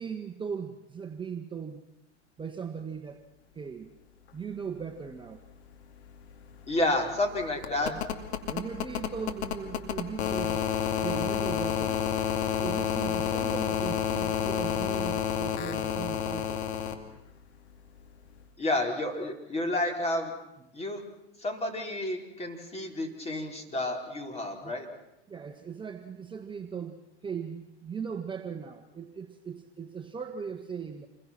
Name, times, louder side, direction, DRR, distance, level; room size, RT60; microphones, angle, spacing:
voice 1, 0.0-1.8 2.4-3.2 3.5-3.9 4.3-5.4 7.8-8.1 8.5-10.6 11.0-12.2 12.6-16.6 24.6-24.7 25.3-31.1, right 6 dB, 15° right, 1.4 m, -38 dB
cell phone interference with speaker, 5.7-5.8 6.0-16.9 18.4-18.5, left 9 dB, 70° left, 2.8 m, -30 dB
voice 2, 6.7-7.9 18.6-20.3 20.7-21.0 21.4-24.9, left 1 dB, 20° left, 4.6 m, -30 dB
28.5 x 22.0 x 6.1 m
hypercardioid pair, 115°, 35 cm